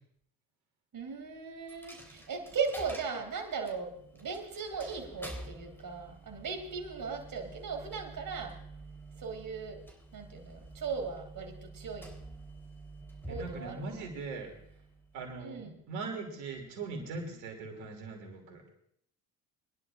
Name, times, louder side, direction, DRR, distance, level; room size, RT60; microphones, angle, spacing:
voice 1, 0.9-8.5 9.2-9.8 10.1-12.1 13.3-14.0 15.4-15.8, right 5 dB, 45° right, 4 dB, 2.9 m, -38 dB
Coin (dropping), 1.7-15.4, right 2 dB, 5° left, 3.8 m, -49 dB
voice 2, 13.3-14.5 15.1-18.6, right 3 dB, 75° right, 2 dB, 3.0 m, -40 dB
25.0 x 10.5 x 2.6 m, 0.68 s
hypercardioid pair, 55°, 46 cm